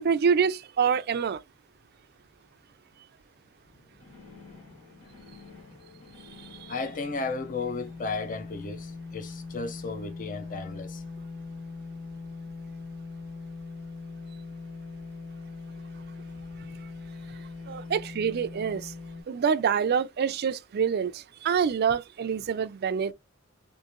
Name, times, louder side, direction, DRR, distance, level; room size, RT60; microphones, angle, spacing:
voice 1, 0.0-1.4 6.5-6.7 17.7-18.9 19.3-23.1, right 6 dB, 50° right, 0.4 m, -26 dB
sound 1, 3.6-19.2, left 4 dB, 75° left, 1.5 m, -42 dB
voice 2, 6.7-11.0, left 3 dB, 40° left, 0.6 m, -34 dB
3.6 x 2.6 x 2.9 m
head